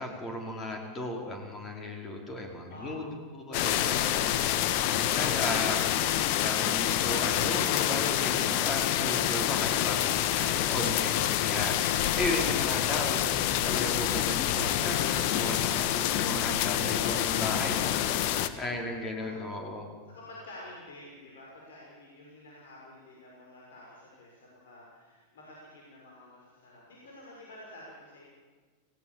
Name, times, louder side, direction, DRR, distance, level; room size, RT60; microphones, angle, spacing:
voice 1, 0.0-3.0 3.3-4.6 4.9-6.1 6.4-11.1 11.4-17.8 18.6-19.8, left 1 dB, 20° left, 2 dB, 5.0 m, -35 dB
voice 2, 2.7-3.2 19.2-19.5 20.1-28.2, left 1 dB, 60° left, -3 dB, 6.5 m, -50 dB
sound 1, 3.5-18.5, left 12 dB, 45° left, 1.4 m, -27 dB
29.5 x 18.5 x 7.4 m, 1.4 s
figure-of-eight pair, 90°, 0 cm